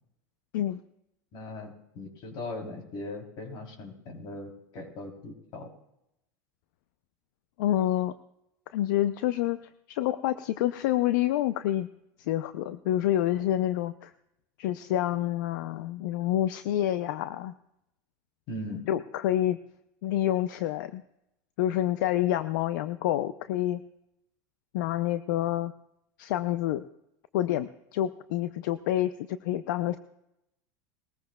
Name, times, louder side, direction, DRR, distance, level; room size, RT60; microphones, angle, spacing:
voice 1, 1.3-5.7 18.5-18.8, left 2 dB, 50° left, 3 dB, 3.3 m, -39 dB
voice 2, 7.6-8.1 8.7-9.6 9.9-11.9 12.2-14.1 14.6-17.5 18.9-19.6 20.0-21.0 21.6-23.8 24.7-25.7 26.2-26.8 27.3-30.0, left 13 dB, 75° left, 12 dB, 0.5 m, -28 dB
20.5 x 14.5 x 2.3 m, 0.84 s
supercardioid pair, 120°, 10 cm